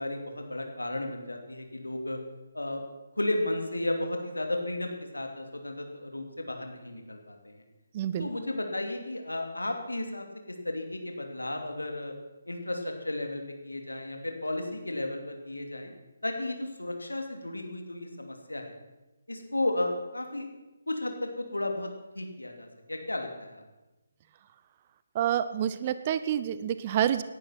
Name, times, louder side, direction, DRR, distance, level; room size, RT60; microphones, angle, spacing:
voice 1, 0.0-2.2 2.5-2.8 3.1-7.6 8.2-12.1 12.5-15.9 16.2-18.8 19.3-20.5 20.9-23.6, left 1 dB, 75° left, 4 dB, 2.9 m, -34 dB
voice 2, 7.9-8.3 25.1-27.2, right 10 dB, 30° right, 13 dB, 0.7 m, -28 dB
18.0 x 11.0 x 6.0 m, 1.1 s
figure-of-eight pair, 145°, 0 cm